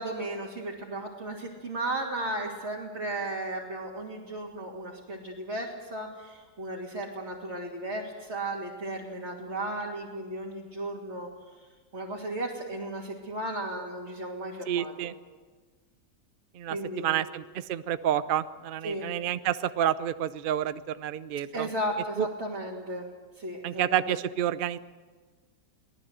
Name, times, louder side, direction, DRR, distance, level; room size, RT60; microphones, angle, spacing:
voice 1, 0.0-11.3 11.9-15.1 16.7-17.2 18.8-19.1 21.5-23.1 23.4-24.2, right 1 dB, 35° right, -3 dB, 3.0 m, -35 dB
voice 2, 14.7-15.1 16.5-21.7 22.2-22.3 23.6-24.8, right 10 dB, 55° right, 13 dB, 0.6 m, -29 dB
24.5 x 18.5 x 8.1 m, 1.4 s
omnidirectional pair, 1.9 m